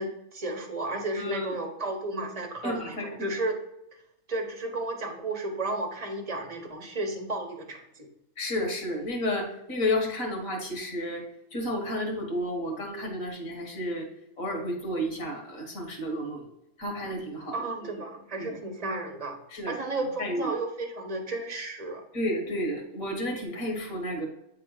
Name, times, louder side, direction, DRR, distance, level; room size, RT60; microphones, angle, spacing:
voice 1, 0.0-3.6 3.9-4.0 4.3-8.1 17.5-19.4 19.7-22.0, right 2 dB, 30° right, 3 dB, 1.2 m, -33 dB
voice 2, 2.6-3.3 8.4-11.2 11.5-14.1 14.4-16.4 16.8-18.0 18.4-18.5 19.5-19.7 20.2-20.5 22.1-24.3, left 1 dB, 75° left, 1 dB, 2.0 m, -31 dB
8.7 x 3.8 x 4.0 m, 0.83 s
omnidirectional pair, 1.4 m